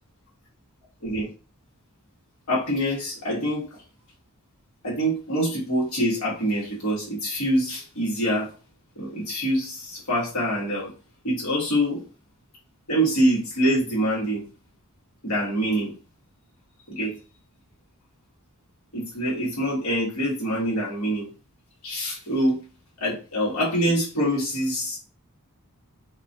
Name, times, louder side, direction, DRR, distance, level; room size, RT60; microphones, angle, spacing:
voice 1, 2.5-3.6 4.8-8.5 9.0-10.9 11.2-12.0 12.9-14.4 15.2-15.9 16.9-17.1 18.9-21.3 21.8-22.6 23.0-25.0, equal, 75° left, -5 dB, 1.1 m, -25 dB
2.4 x 2.2 x 2.6 m, 0.34 s
head